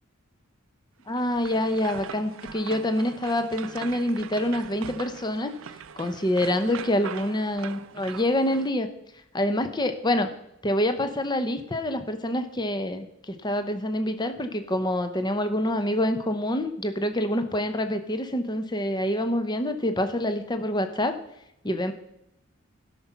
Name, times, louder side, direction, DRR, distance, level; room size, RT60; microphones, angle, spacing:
voice 1, 1.1-5.5 6.0-8.9 9.3-10.3 10.6-21.2 21.6-21.9, left 1 dB, 20° left, 9 dB, 0.7 m, -26 dB
sound 1, 1.1-8.7, right 7 dB, 65° right, 0.4 m, -41 dB
12.5 x 6.0 x 5.6 m, 0.81 s
head